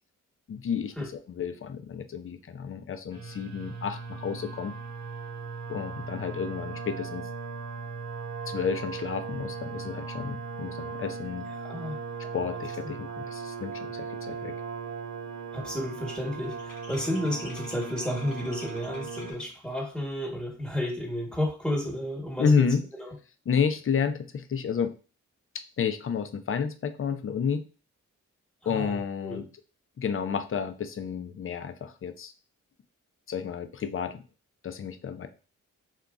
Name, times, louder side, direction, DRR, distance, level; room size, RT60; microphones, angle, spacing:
voice 1, 0.5-0.9 1.3-4.7 5.7-7.2 8.5-11.5 12.3-14.5 22.4-22.8 23.5-24.9 25.8-27.7 28.7-29.4 30.0-32.3 33.3-34.2 34.6-35.3, left 6 dB, 40° left, 9 dB, 0.5 m, -30 dB
sound 1, 3.1-19.3, right 5 dB, 55° right, 0.9 m, -38 dB
voice 2, 11.5-12.3 15.5-22.6 22.9-23.1 28.6-29.4, equal, ahead, -1 dB, 1.3 m, -32 dB
sound 2, 16.0-19.7, left 2 dB, 80° left, 1.1 m, -49 dB
2.9 x 2.4 x 2.4 m, 0.34 s
supercardioid pair, 45°, 33 cm